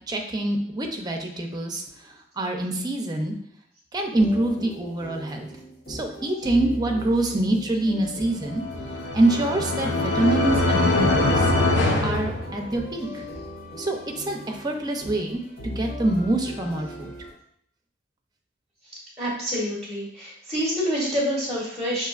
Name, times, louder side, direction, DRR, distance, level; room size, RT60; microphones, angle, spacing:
voice 1, 0.1-1.8 2.4-3.3 3.9-5.5 5.9-8.6 9.1-11.5 12.0-13.2 13.8-17.1, right 2 dB, 20° right, 2 dB, 0.6 m, -25 dB
sound 1, 4.1-17.3, equal, 55° left, 1.1 m, -38 dB
sound 2, 8.5-13.1, left 2 dB, 75° left, 0.7 m, -23 dB
voice 2, 19.2-22.1, equal, ahead, -6 dB, 1.0 m, -27 dB
6.0 x 2.7 x 2.4 m, 0.66 s
head